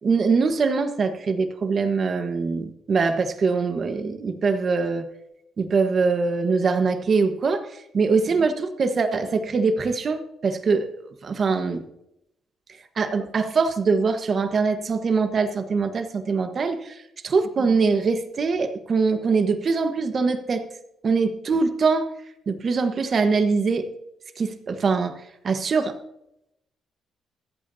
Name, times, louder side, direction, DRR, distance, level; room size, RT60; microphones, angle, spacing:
voice 1, 0.0-5.1 5.6-7.7 7.9-10.9 11.2-11.8 13.0-17.0 17.2-20.6 21.0-22.1 22.5-23.9 24.4-25.1 25.4-25.9, right 4 dB, 45° right, 8 dB, 1.3 m, -23 dB
25.5 x 8.6 x 2.8 m, 0.82 s
cardioid pair, 90°, 0 cm